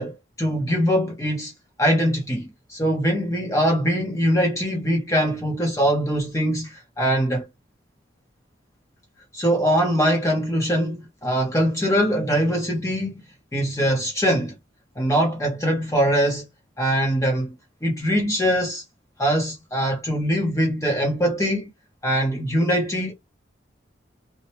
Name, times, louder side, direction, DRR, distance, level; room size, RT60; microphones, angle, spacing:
voice 1, 0.0-1.5 1.8-7.5 9.3-13.2 13.5-14.5 15.0-16.4 16.8-17.6 17.8-18.8 19.2-21.7 22.0-23.1, equal, 15° left, 0.7 m, -22 dB
2.9 x 2.0 x 3.0 m
head